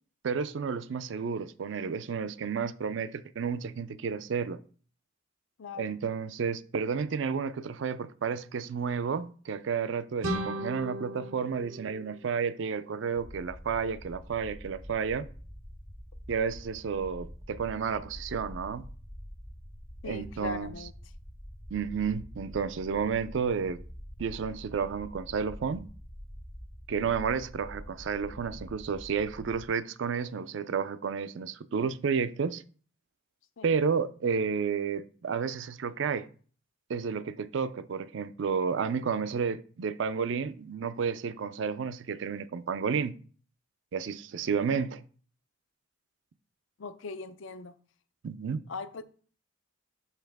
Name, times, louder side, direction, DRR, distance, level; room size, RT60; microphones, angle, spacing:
voice 1, 0.2-4.6 5.7-15.3 16.3-18.8 20.0-20.7 21.7-23.8 24.2-25.9 26.9-32.6 33.6-36.3 36.9-43.2 43.9-45.0 48.2-48.6, right 6 dB, 65° right, 0.4 m, -31 dB
voice 2, 5.6-5.9 20.0-20.9 33.6-33.7 46.8-47.7 48.7-49.0, left 3 dB, 70° left, 0.5 m, -39 dB
sound 1, 10.2-13.0, right 1 dB, 85° right, 0.9 m, -36 dB
sound 2, 13.1-29.7, equal, 10° left, 0.5 m, -46 dB
5.6 x 5.3 x 3.4 m
head